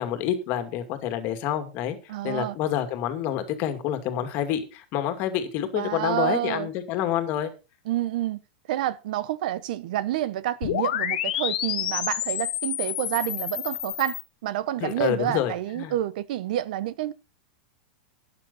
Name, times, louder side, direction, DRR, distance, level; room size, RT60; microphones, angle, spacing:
voice 1, 0.0-2.0 2.2-7.5 14.8-15.9, left 10 dB, 35° left, 2.2 m, -28 dB
voice 2, 2.1-2.6 5.7-6.7 7.9-8.4 8.7-14.2 14.4-17.1, right 13 dB, 60° right, 0.9 m, -28 dB
sound 1, 10.6-14.2, left 12 dB, 65° left, 2.0 m, -29 dB
12.5 x 9.8 x 4.1 m
supercardioid pair, 160°, 5 cm